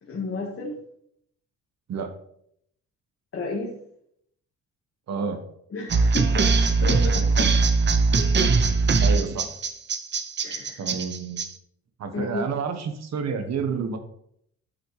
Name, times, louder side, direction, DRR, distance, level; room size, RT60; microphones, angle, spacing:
voice 1, 0.0-0.8 3.3-3.8 5.7-7.5 8.1-8.3 10.4-10.9 12.1-12.5, left 2 dB, 45° left, -2 dB, 1.7 m, -32 dB
voice 2, 5.1-5.4 9.0-9.5 10.8-11.5 12.0-14.0, right 6 dB, 60° right, 7 dB, 1.3 m, -29 dB
sound 1, 5.9-11.5, right 4 dB, 35° right, 0.7 m, -21 dB
8.5 x 5.9 x 3.3 m, 0.70 s
cardioid pair, 90°, 30 cm